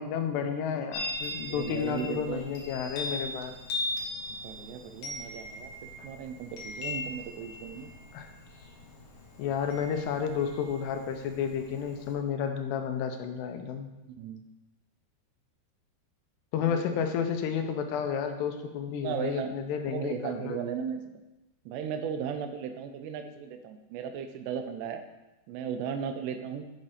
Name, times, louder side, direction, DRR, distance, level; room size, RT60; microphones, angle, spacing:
voice 1, 0.0-3.5 6.0-6.1 8.1-8.3 9.4-13.9 16.5-20.6, left 7 dB, 85° left, 6 dB, 2.8 m, -31 dB
Chime, 0.9-12.1, left 2 dB, 65° left, 2.6 m, -39 dB
voice 2, 1.5-2.4 4.4-5.7 6.0-7.9 14.1-14.4 16.6-16.8 18.9-19.6 19.9-21.0 21.7-25.0 25.5-26.7, right 7 dB, 85° right, 7 dB, 2.8 m, -36 dB
8.7 x 4.1 x 4.9 m, 1.0 s
omnidirectional pair, 4.8 m